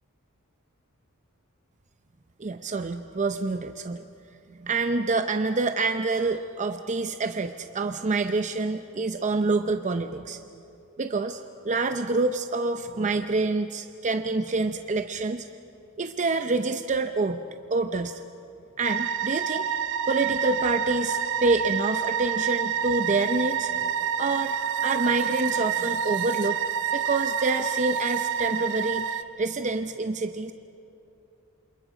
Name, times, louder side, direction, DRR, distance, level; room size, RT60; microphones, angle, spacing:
voice 1, 2.4-4.0 4.6-10.4 11.0-15.5 16.0-17.4 17.7-18.2 18.8-19.7 20.0-23.9 24.2-24.6 24.8-26.6 26.9-30.5, right 3 dB, 35° right, 8 dB, 0.6 m, -27 dB
sound 1, 18.8-29.2, right 8 dB, 60° right, 0.9 m, -28 dB
28.0 x 27.0 x 5.1 m, 2.9 s
head